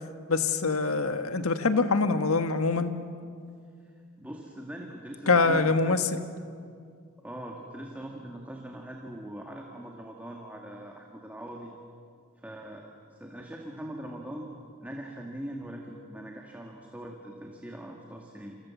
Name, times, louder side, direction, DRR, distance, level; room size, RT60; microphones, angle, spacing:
voice 1, 0.3-2.9 5.3-6.0, left 3 dB, 70° left, 8 dB, 1.6 m, -24 dB
voice 2, 3.8-6.0 7.2-11.7 12.4-14.5 14.8-18.6, right 1 dB, 5° right, 0 dB, 2.0 m, -42 dB
29.0 x 27.5 x 7.3 m, 2.2 s
head